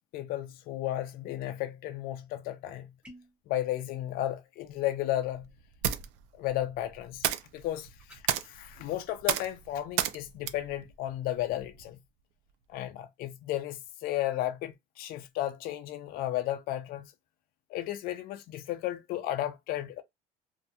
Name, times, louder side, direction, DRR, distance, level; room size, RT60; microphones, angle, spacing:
voice 1, 0.1-2.9 3.5-5.5 6.4-12.0 12.7-17.1 17.7-20.0, left 13 dB, 55° left, 0.4 m, -34 dB
sound 1, 3.0-3.4 8.0-8.3, equal, 5° right, 0.8 m, -51 dB
sound 2, 4.7-11.9, right 11 dB, 90° right, 0.4 m, -35 dB
2.5 x 2.2 x 2.7 m
cardioid pair, 140°, 18 cm